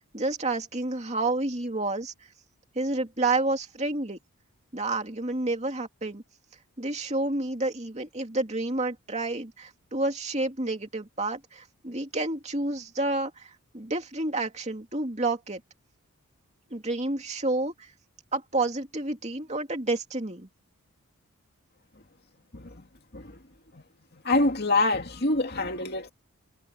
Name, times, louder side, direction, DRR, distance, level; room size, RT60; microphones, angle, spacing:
voice 1, 0.0-2.1 2.8-4.2 4.7-6.2 6.8-15.6 16.7-17.9 18.3-20.5, right 2 dB, 30° right, 2.6 m, -29 dB
voice 2, 24.2-26.1, left 2 dB, 45° left, 2.6 m, -25 dB
head